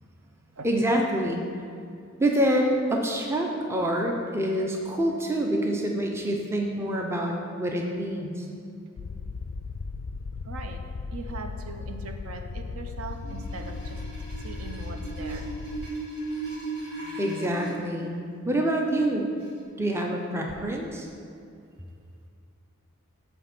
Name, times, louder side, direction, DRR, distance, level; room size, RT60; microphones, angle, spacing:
voice 1, 0.6-1.4 2.2-8.4 17.2-18.2 18.5-19.3 19.8-21.1, right 1 dB, 10° right, 0 dB, 0.5 m, -26 dB
sound 1, 9.0-15.9, left 4 dB, 85° left, 0.4 m, -36 dB
voice 2, 10.4-10.8 11.1-14.0 14.4-15.5, right 3 dB, 70° right, 5 dB, 0.6 m, -40 dB
sound 2, 13.1-17.7 19.4-19.6, right 3 dB, 45° right, 1.8 m, -37 dB
9.1 x 3.4 x 5.9 m, 2.4 s
head